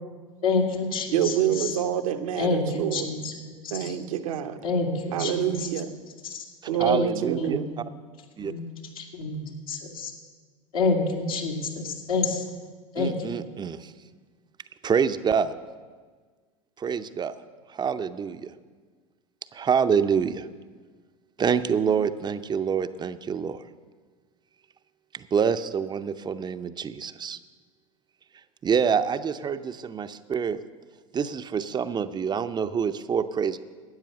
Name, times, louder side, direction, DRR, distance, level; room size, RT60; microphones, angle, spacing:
voice 1, 0.4-1.8 2.4-4.0 4.6-5.7 6.2-6.4 6.9-7.1 7.4-7.5 8.4-8.6 9.0-10.1 10.7-12.4 12.9-13.3, left 4 dB, 80° left, 0 dB, 2.2 m, -28 dB
voice 2, 1.1-3.1 3.7-4.6 5.1-5.9 6.7-7.9, right 10 dB, 75° right, 7 dB, 0.9 m, -27 dB
voice 3, 6.8-7.6 8.4-8.5 13.0-13.9 14.8-15.6 16.8-17.3 17.7-18.5 19.5-20.5 21.4-23.6 25.1-27.4 28.6-30.6 31.1-33.6, right 6 dB, 25° right, 11 dB, 0.6 m, -26 dB
13.0 x 9.0 x 6.7 m, 1.5 s
hypercardioid pair, 85°, 18 cm